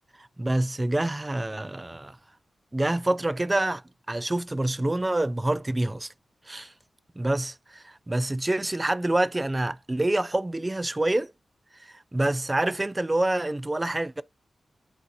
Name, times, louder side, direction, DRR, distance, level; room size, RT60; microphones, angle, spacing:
voice 1, 0.2-2.2 2.7-3.8 4.1-6.1 6.5-6.7 7.2-11.3 11.8-14.2, right 1 dB, 15° right, 0.3 m, -27 dB
9.8 x 3.9 x 2.6 m
wide cardioid pair, 130°, 0 cm